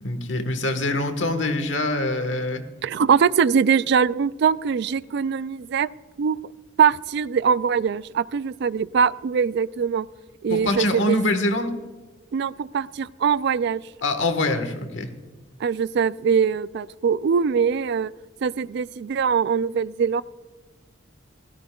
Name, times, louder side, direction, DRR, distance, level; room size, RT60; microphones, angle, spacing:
voice 1, 0.0-2.6 10.5-11.7 14.0-15.1, left 2 dB, 70° left, 8 dB, 1.4 m, -24 dB
voice 2, 2.8-5.9 6.2-6.4 6.8-10.1 10.4-11.2 12.3-13.8 15.6-18.1 18.4-20.2, right 6 dB, 60° right, 18 dB, 0.3 m, -22 dB
16.5 x 16.0 x 2.3 m, 1.3 s
head